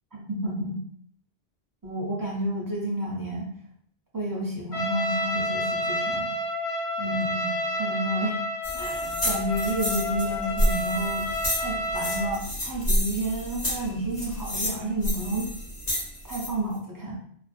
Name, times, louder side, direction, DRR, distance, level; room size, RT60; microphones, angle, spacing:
voice 1, 0.1-0.8 1.8-3.5 4.1-6.3 7.0-8.4 8.7-11.3 11.6-15.5 16.3-17.2, right 1 dB, 35° right, -3 dB, 0.3 m, -30 dB
Trumpet, 4.7-12.4, left 1 dB, 85° left, 1.1 m, -30 dB
sound 1, 8.6-16.5, equal, 35° left, 0.8 m, -30 dB
2.4 x 2.1 x 2.5 m, 0.64 s
omnidirectional pair, 1.1 m